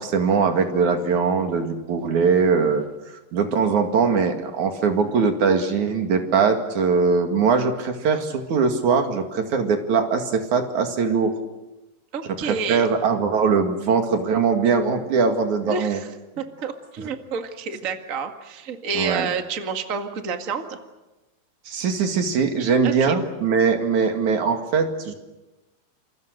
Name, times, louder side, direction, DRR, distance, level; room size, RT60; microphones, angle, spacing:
voice 1, 0.0-2.9 3.3-11.3 12.4-16.0 18.9-19.3 21.7-25.1, right 5 dB, 50° right, 5 dB, 3.1 m, -21 dB
voice 2, 12.1-12.9 15.6-16.1 16.4-20.8 22.8-23.2, right 5 dB, 70° right, 5 dB, 0.7 m, -29 dB
28.5 x 27.0 x 6.6 m, 1.1 s
omnidirectional pair, 5.0 m